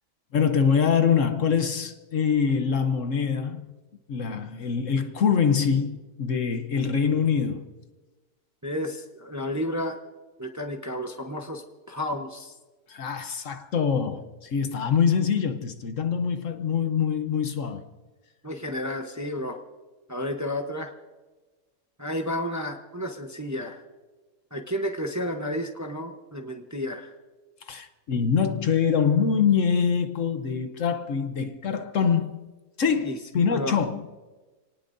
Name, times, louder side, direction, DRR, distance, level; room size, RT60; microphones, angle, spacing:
voice 1, 0.3-3.6 4.1-7.7 12.9-17.9 27.7-32.5 32.8-34.1, left 6 dB, 60° left, 1.2 m, -24 dB
voice 2, 8.6-10.0 10.4-12.5 18.4-19.6 20.1-20.9 22.0-23.8 24.5-27.1 33.0-33.2 33.5-33.8, left 1 dB, 15° right, 0.8 m, -31 dB
28.5 x 18.5 x 2.6 m
omnidirectional pair, 1.6 m